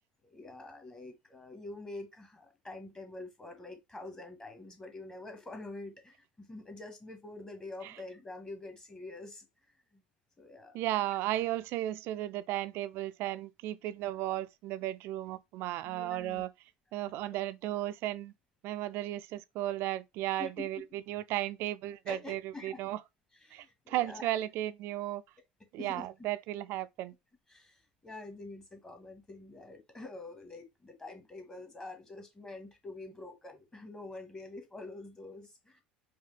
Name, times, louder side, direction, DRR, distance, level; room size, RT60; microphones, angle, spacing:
voice 1, 0.2-9.5 9.9-10.0 10.4-10.8 15.8-16.4 17.0-17.2 20.4-20.8 22.1-22.8 23.4-24.4 25.8-26.1 27.5-35.8, left 2 dB, 15° left, 1.3 m, -46 dB
voice 2, 10.7-16.5 16.9-18.3 18.6-23.0 23.5-25.2 25.7-27.1, right 14 dB, 50° right, 0.4 m, -35 dB
4.8 x 2.4 x 3.3 m
figure-of-eight pair, 70°, 5 cm